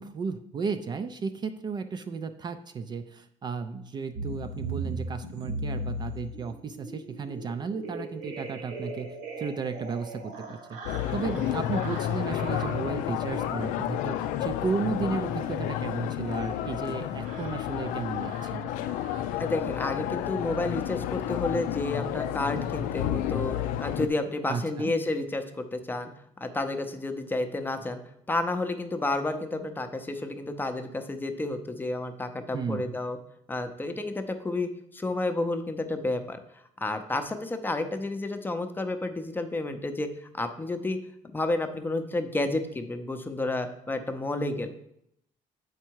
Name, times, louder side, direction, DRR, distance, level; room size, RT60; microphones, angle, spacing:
voice 1, 0.0-18.7 24.5-24.9 32.5-32.9, right 5 dB, 35° right, 8 dB, 0.4 m, -34 dB
sound 1, 4.1-19.5 20.3-20.5 20.8-21.0 21.3-21.5 21.8-22.0, right 2 dB, 80° right, 1.5 m, -40 dB
sound 2, 10.8-24.1, left 12 dB, 85° left, 0.4 m, -31 dB
voice 2, 19.2-26.1 26.4-28.0 28.3-33.2 33.5-41.0 41.3-44.7, left 2 dB, 15° left, 7 dB, 0.6 m, -31 dB
7.4 x 4.6 x 4.6 m, 0.76 s
cardioid pair, 120°, 13 cm